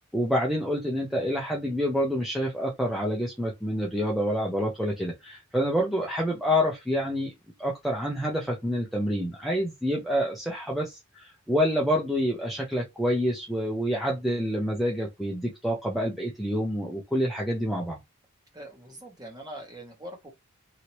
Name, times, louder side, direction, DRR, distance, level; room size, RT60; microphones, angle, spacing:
voice 1, 0.1-7.3 7.6-18.0, equal, ahead, 0.6 m, -27 dB
voice 2, 18.5-20.3, right 1 dB, 20° right, 1.2 m, -42 dB
2.9 x 2.8 x 3.0 m
head